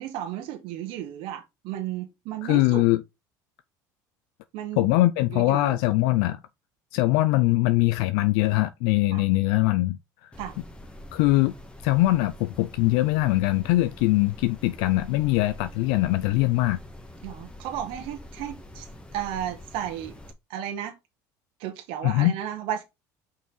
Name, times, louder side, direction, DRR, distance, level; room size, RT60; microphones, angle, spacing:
voice 1, 0.0-2.8 4.5-4.9 5.3-5.8 9.1-9.2 10.4-10.6 17.2-18.9 19.1-20.2 20.5-20.9 21.6-22.8, right 11 dB, 70° right, 1.4 m, -34 dB
voice 2, 2.4-3.0 4.8-6.4 6.9-10.0 11.1-11.5 11.8-16.8 22.0-22.3, left 18 dB, 75° left, 0.5 m, -22 dB
sound 1, 10.3-20.3, left 1 dB, 10° left, 1.6 m, -45 dB
5.6 x 4.6 x 3.9 m
supercardioid pair, 85°, 10 cm